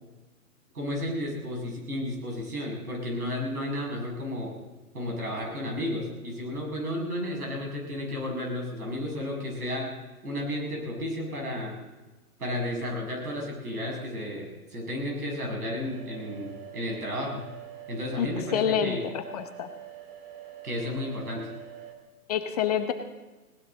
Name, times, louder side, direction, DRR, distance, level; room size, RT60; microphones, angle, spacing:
voice 1, 0.7-4.6 4.9-9.9 10.2-11.8 12.4-17.4 17.9-19.0 20.6-21.5, left 1 dB, 75° right, 0 dB, 7.2 m, -32 dB
sound 1, 15.8-21.9, right 11 dB, 30° right, 2.4 m, -45 dB
voice 2, 18.5-19.7 22.3-22.9, left 9 dB, 25° left, 7 dB, 0.8 m, -27 dB
19.5 x 18.5 x 4.0 m, 1.2 s
figure-of-eight pair, 130°, 45 cm